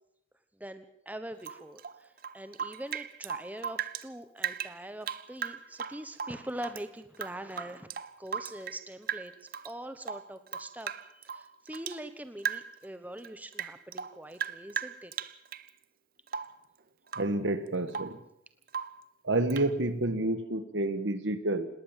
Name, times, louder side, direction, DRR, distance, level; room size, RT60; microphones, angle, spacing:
voice 1, 0.6-7.9 8.2-9.3 9.6-15.1, right 1 dB, 10° right, 10 dB, 1.1 m, -43 dB
Rain / Drip, 1.4-4.1 4.4-6.8 7.1-8.8 9.1-9.7 10.0-12.0 12.4-12.9 13.2-15.7 16.3-16.6 17.1-17.4 17.7-18.2 18.7-19.0 19.5-19.7, right 7 dB, 45° right, 0.7 m, -37 dB
voice 2, 17.2-18.2 19.2-21.7, right 2 dB, 70° right, 12 dB, 1.6 m, -29 dB
20.0 x 18.5 x 7.5 m, 0.76 s
head